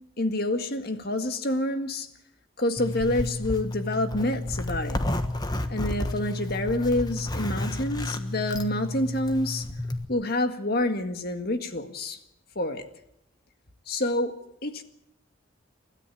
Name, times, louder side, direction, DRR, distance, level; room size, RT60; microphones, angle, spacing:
voice 1, 0.2-2.1 2.6-5.0 5.7-9.7 10.1-12.2 12.6-12.8 13.9-14.4 14.6-14.8, left 1 dB, 50° left, 8 dB, 1.8 m, -27 dB
Zipper (clothing), 2.8-10.0, left 1 dB, 20° left, 1.3 m, -31 dB
29.0 x 13.5 x 8.4 m, 0.79 s
head